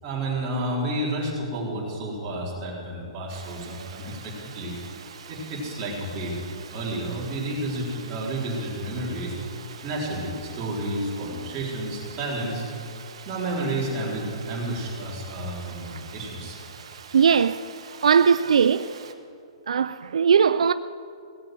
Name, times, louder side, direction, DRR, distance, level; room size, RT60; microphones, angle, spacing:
voice 1, 0.0-4.7 5.3-6.4 6.7-9.3 9.8-12.6 13.3-16.6, right 1 dB, 25° right, 3.8 m, -30 dB
Water, 3.3-19.1, right 7 dB, 70° right, 1.4 m, -45 dB
voice 2, 17.1-17.7 18.0-19.0 19.7-20.7, right 6 dB, 85° right, 0.4 m, -19 dB
17.5 x 7.8 x 7.6 m
hypercardioid pair, 155°, 3 cm